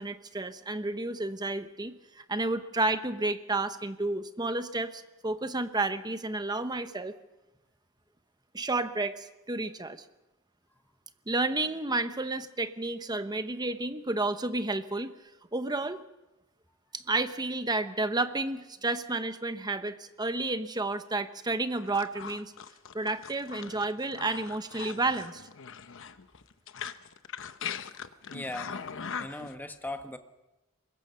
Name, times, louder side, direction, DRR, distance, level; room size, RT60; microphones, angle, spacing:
voice 1, 0.0-7.1 8.5-10.0 11.3-15.1 15.5-16.0 16.9-22.5 22.9-25.5, right 2 dB, 20° right, 10 dB, 1.0 m, -31 dB
sound 1, 21.7-29.5, left 7 dB, 60° left, 0.9 m, -40 dB
voice 2, 28.3-28.7 29.2-30.2, left 1 dB, 10° left, 7 dB, 1.2 m, -38 dB
24.5 x 21.0 x 5.7 m, 1.0 s
head